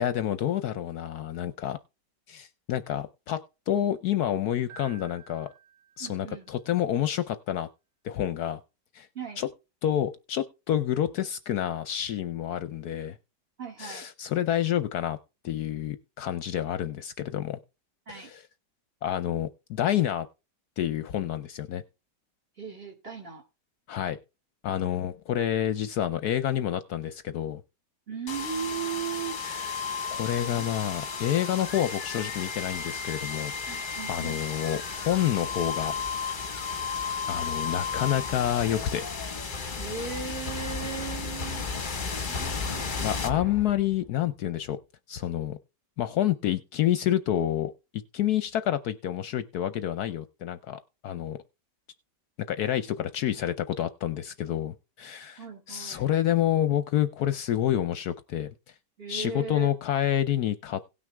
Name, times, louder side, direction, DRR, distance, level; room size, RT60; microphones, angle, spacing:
voice 1, 0.0-1.8 2.3-5.5 6.0-7.7 8.0-8.6 8.9-9.1 9.4-9.5 9.8-13.2 13.8-15.2 15.4-17.6 18.1-18.4 19.0-20.3 20.8-21.8 23.9-24.2 24.6-27.6 29.4-29.8 30.1-35.9 37.3-39.0 41.8-42.3 43.0-44.8 45.1-45.6 46.0-51.4 52.5-58.5 59.1-60.8, left 11 dB, 70° left, 12 dB, 1.1 m, -28 dB
Keyboard (musical), 4.7-6.5, right 9 dB, 80° right, 1.5 m, -51 dB
voice 2, 6.0-6.5 9.1-9.4 13.6-14.1 18.1-18.3 22.6-23.4 24.8-25.0 28.1-29.4 30.4-30.7 33.7-34.4 39.8-42.0 42.3-43.2 55.4-56.1 59.0-59.7, right 6 dB, 35° right, 2 dB, 2.2 m, -37 dB
sound 1, 28.3-44.1, left 5 dB, 30° left, 1.2 m, -33 dB
17.5 x 6.1 x 3.4 m, 0.28 s
omnidirectional pair, 1.9 m